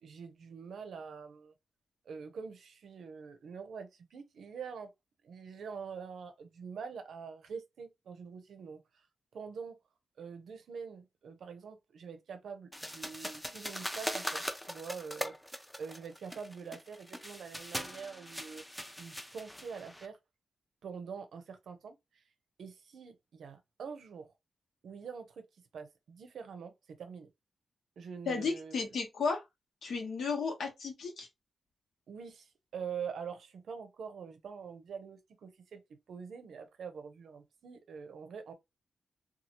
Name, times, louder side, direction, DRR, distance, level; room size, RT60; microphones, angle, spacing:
voice 1, 0.0-1.5 2.1-4.9 5.2-8.8 9.3-9.8 10.2-20.2 20.8-22.0 22.6-24.3 24.8-25.5 25.7-27.3 28.0-28.9 32.1-35.8 36.1-38.5, right 6 dB, 80° right, 0.6 m, -45 dB
sound 1, 12.7-20.1, equal, 5° left, 0.4 m, -41 dB
voice 2, 28.3-29.4 29.8-31.3, left 4 dB, 85° left, 1.0 m, -34 dB
2.7 x 2.3 x 2.8 m
wide cardioid pair, 105°, 0 cm